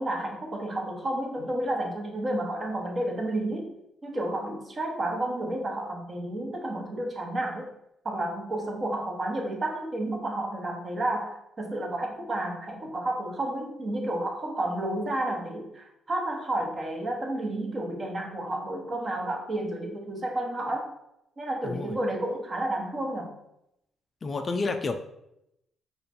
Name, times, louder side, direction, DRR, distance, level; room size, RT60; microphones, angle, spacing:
voice 1, 0.0-3.7 4.0-7.7 8.0-20.9 21.4-23.3, right 1 dB, 35° right, 1 dB, 1.1 m, -31 dB
voice 2, 24.2-25.0, left 3 dB, 35° left, 7 dB, 0.4 m, -29 dB
4.9 x 2.4 x 4.2 m, 0.81 s
cardioid pair, 90°, 0 cm